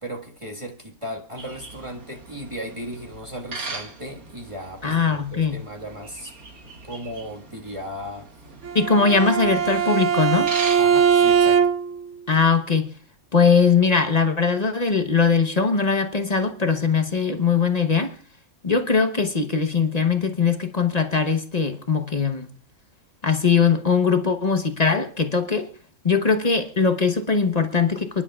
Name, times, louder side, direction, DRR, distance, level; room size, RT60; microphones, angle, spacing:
voice 1, 0.0-6.3 6.9-8.3 10.8-11.7, equal, 20° right, 1.7 m, -36 dB
sound 1, 1.4-11.7, right 3 dB, 75° right, 2.2 m, -39 dB
voice 2, 4.8-5.6 8.7-10.5 12.3-12.9 13.3-18.1 18.6-22.5 23.2-25.7 26.0-28.2, left 5 dB, 30° left, 1.0 m, -20 dB
Bowed string instrument, 8.6-12.0, right 7 dB, 60° right, 1.3 m, -20 dB
29.0 x 11.0 x 2.4 m
omnidirectional pair, 1.5 m